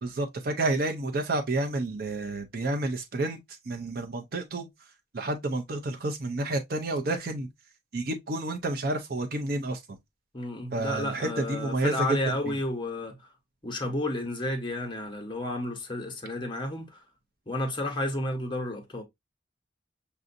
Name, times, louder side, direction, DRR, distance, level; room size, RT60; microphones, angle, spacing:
voice 1, 0.0-3.4 3.7-4.7 5.1-7.5 7.9-10.0 10.7-12.2 12.5-12.6, right 2 dB, 50° right, 0.5 m, -30 dB
voice 2, 10.3-13.2 13.6-17.0 17.5-19.0, left 1 dB, 25° left, 1.1 m, -31 dB
6.7 x 2.5 x 2.5 m
head